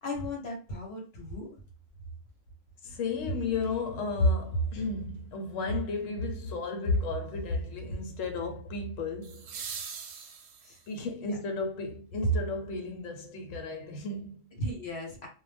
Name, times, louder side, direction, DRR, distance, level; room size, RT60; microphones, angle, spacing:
voice 1, 0.0-1.5 10.6-10.8 11.3-11.4 14.6-15.3, left 1 dB, 60° left, 1.0 m, -36 dB
voice 2, 2.8-9.6 10.9-14.5, left 1 dB, 90° left, 1.0 m, -32 dB
sound 1, 3.6-3.7 9.2-11.0 13.2-13.3, right 6 dB, 65° right, 0.8 m, -42 dB
2.2 x 2.1 x 3.2 m
omnidirectional pair, 1.3 m